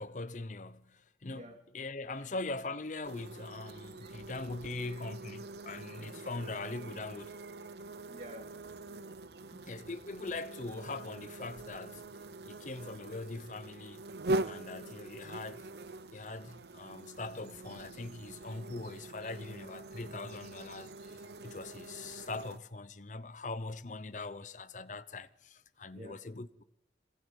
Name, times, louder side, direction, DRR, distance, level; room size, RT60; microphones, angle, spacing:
voice 1, 0.0-1.5 1.7-7.4 9.6-12.1 12.5-14.0 14.4-15.7 16.1-26.6, left 3 dB, 45° left, 0.8 m, -42 dB
voice 2, 1.3-1.6 2.2-2.3 3.8-4.4 4.8-5.1 5.7-6.0 6.4-6.6 7.8-9.8 25.9-26.2, equal, 40° right, 2.4 m, -53 dB
sound 1, 3.0-22.6, right 2 dB, 65° right, 0.7 m, -43 dB
23.0 x 18.5 x 8.2 m
head